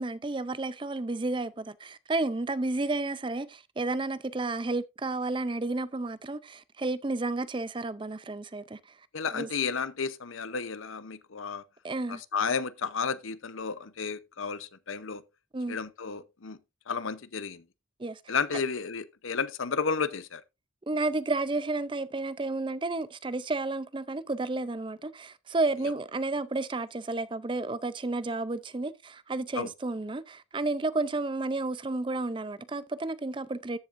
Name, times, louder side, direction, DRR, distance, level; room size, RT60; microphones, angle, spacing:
voice 1, 0.0-8.8 9.3-9.5 11.8-12.2 15.5-15.8 18.0-18.3 20.9-33.8, right 2 dB, 25° right, 0.4 m, -31 dB
voice 2, 9.1-11.6 12.1-15.2 15.7-16.6 16.9-17.6 18.3-20.4 29.5-29.7, left 5 dB, 80° left, 0.8 m, -32 dB
14.0 x 7.5 x 2.5 m
head